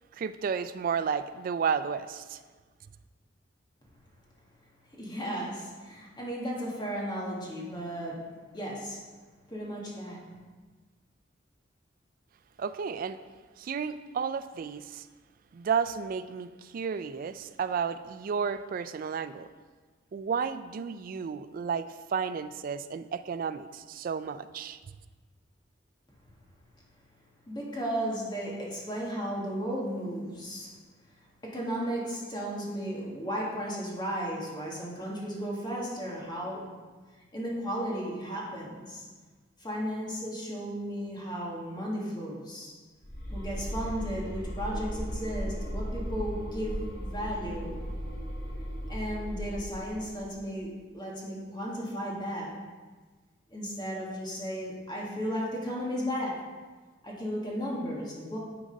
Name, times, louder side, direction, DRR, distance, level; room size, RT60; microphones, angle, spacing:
voice 1, 0.1-2.4 12.6-13.2 13.6-15.1 15.5-19.5 20.1-24.8, right 6 dB, 50° right, 13 dB, 0.3 m, -32 dB
voice 2, 4.9-8.2 8.5-9.0 9.5-10.2 27.5-30.7 31.4-36.7 37.3-39.1 39.6-42.7 43.3-47.7 48.9-52.5 53.5-56.4 57.0-58.4, equal, 25° left, -4 dB, 1.6 m, -34 dB
sound 1, 43.0-50.2, equal, 80° left, 2.1 m, -36 dB
9.7 x 3.9 x 5.1 m, 1.4 s
head